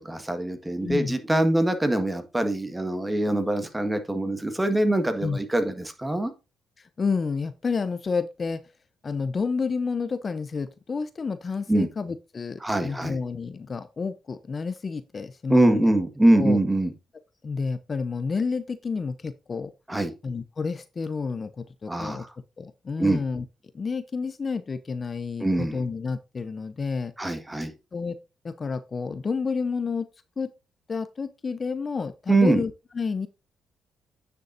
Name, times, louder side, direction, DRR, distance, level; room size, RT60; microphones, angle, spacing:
voice 1, 0.0-6.3 11.7-11.9 12.6-13.2 15.5-16.9 19.9-20.1 21.9-22.3 23.0-23.2 25.4-25.8 27.2-27.7 32.3-32.6, right 1 dB, 10° right, 1.6 m, -23 dB
voice 2, 0.8-1.2 5.2-5.4 6.8-8.6 9.0-15.9 16.3-16.6 17.4-19.7 20.2-22.2 22.6-23.4 23.7-27.1 27.9-28.2 28.4-30.1 30.4-30.5 30.9-33.3, left 4 dB, 35° left, 0.7 m, -30 dB
9.6 x 6.9 x 2.6 m
cardioid pair, 90°, 0 cm